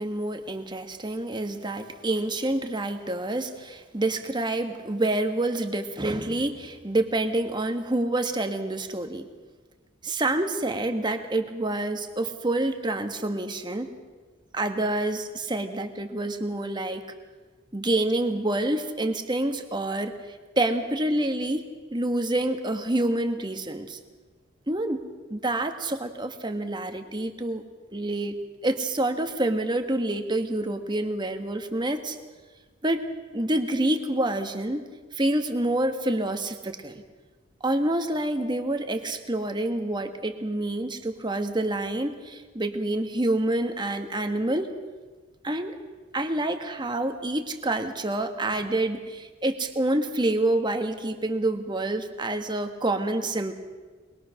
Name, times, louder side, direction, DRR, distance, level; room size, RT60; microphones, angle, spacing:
voice 1, 0.0-9.2 10.0-14.0 14.5-17.0 17.7-20.1 20.6-24.0 24.7-27.6 27.9-32.2 32.8-33.1 33.3-34.9 35.1-37.0 37.6-44.7 45.4-45.8 46.1-53.5, right 1 dB, 25° right, 6 dB, 1.5 m, -27 dB
22.5 x 21.5 x 6.4 m, 1.4 s
head